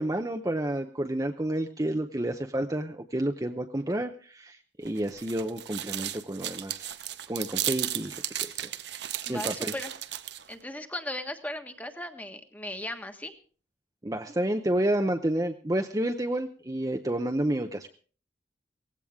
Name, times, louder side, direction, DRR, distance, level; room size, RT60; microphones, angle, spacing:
voice 1, 0.0-7.0 7.3-8.1 8.4-8.7 9.3-9.7 14.0-17.9, right 1 dB, 20° right, 4 dB, 0.7 m, -30 dB
sound 1, 4.8-10.5, right 12 dB, 65° right, 0.8 m, -34 dB
voice 2, 9.3-9.9 10.5-13.4, left 1 dB, 10° left, 6 dB, 1.4 m, -37 dB
18.0 x 16.0 x 3.6 m, 0.41 s
head